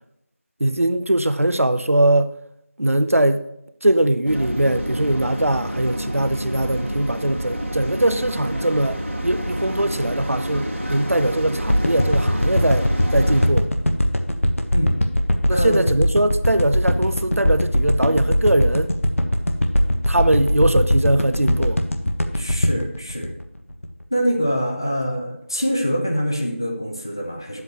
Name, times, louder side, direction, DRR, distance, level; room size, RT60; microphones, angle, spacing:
voice 1, 0.6-2.3 2.8-3.4 3.8-9.0 9.2-13.7 15.5-18.9 20.1-21.8, right 1 dB, 80° right, 0.7 m, -21 dB
sound 1, 4.3-13.5, equal, 65° right, 2.0 m, -28 dB
sound 2, 11.7-24.0 24.4-24.5, equal, 75° left, 1.0 m, -20 dB
voice 2, 15.5-15.9 22.3-23.3 24.1-27.6, equal, 20° left, 0.5 m, -24 dB
8.8 x 7.8 x 3.0 m
figure-of-eight pair, 175°, 7 cm